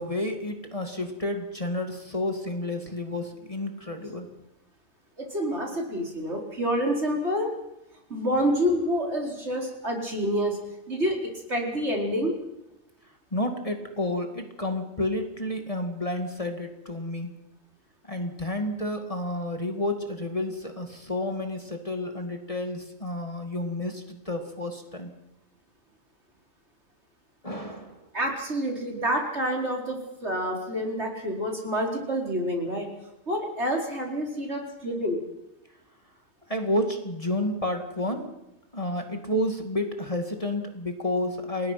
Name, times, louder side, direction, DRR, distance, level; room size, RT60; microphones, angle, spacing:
voice 1, 0.0-4.3 13.3-17.3 18.0-25.1 27.4-28.0 36.5-38.3 38.7-41.7, left 1 dB, 25° left, 4 dB, 2.3 m, -30 dB
voice 2, 5.2-7.5 8.1-10.6 10.9-12.3 28.1-32.9 33.3-35.2, equal, 55° right, 0 dB, 4.9 m, -28 dB
30.0 x 19.5 x 6.0 m, 0.91 s
omnidirectional pair, 1.4 m